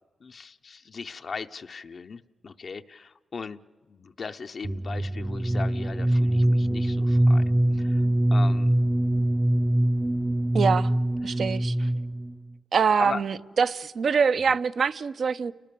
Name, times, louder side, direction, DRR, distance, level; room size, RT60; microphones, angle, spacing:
voice 1, 0.2-3.6 3.9-7.4 7.7-8.0 8.3-8.7 11.3-11.4 13.0-13.2, left 5 dB, 50° left, 0.6 m, -38 dB
sound 1, 4.6-12.3, right 1 dB, 20° right, 0.6 m, -23 dB
voice 2, 10.5-10.9 11.2-11.9 12.7-15.5, right 6 dB, 60° right, 0.7 m, -24 dB
29.5 x 19.5 x 6.9 m
cardioid pair, 75°, 0 cm